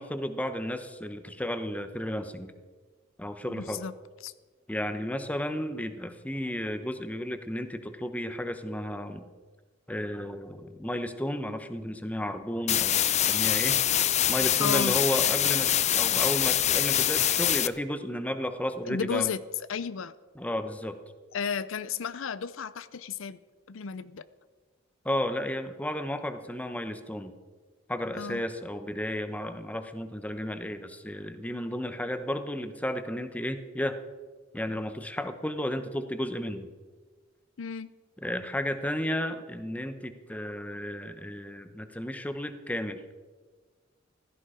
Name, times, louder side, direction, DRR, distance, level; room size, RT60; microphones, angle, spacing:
voice 1, 0.0-2.5 3.2-3.8 4.7-9.3 9.9-13.8 14.3-19.3 20.4-21.0 25.0-27.3 27.9-34.0 34.5-36.7 38.2-43.0, left 1 dB, 5° left, 9 dB, 0.9 m, -33 dB
voice 2, 3.5-3.9 4.2-4.3 14.6-14.9 18.9-19.4 19.7-20.1 21.3-23.4 23.7-24.2 28.2-28.4 37.6-37.9, left 6 dB, 85° left, 15 dB, 0.6 m, -33 dB
sound 1, 12.7-17.7, left 11 dB, 35° left, 0.5 m, -24 dB
15.5 x 14.0 x 5.0 m, 1.4 s
head